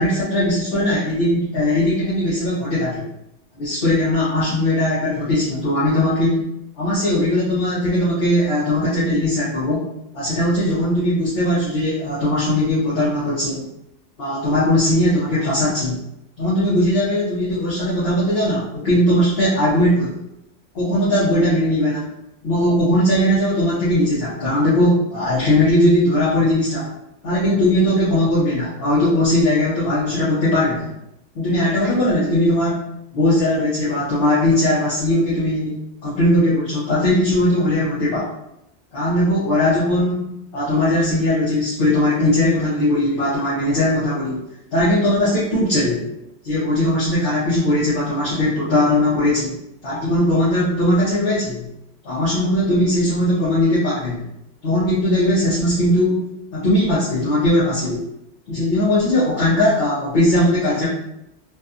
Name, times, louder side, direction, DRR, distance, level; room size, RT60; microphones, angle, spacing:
voice 1, 0.0-3.1 3.6-6.5 6.8-9.8 10.1-13.7 14.2-16.0 16.4-20.2 20.7-22.1 22.4-26.9 27.2-30.9 31.3-32.8 33.1-35.8 36.0-38.3 38.9-44.4 44.7-46.1 46.4-49.5 49.8-51.7 52.0-54.2 54.6-58.1 58.5-60.9, left 1 dB, 60° left, -8 dB, 0.9 m, -19 dB
2.6 x 2.2 x 2.5 m, 0.82 s
omnidirectional pair, 1.2 m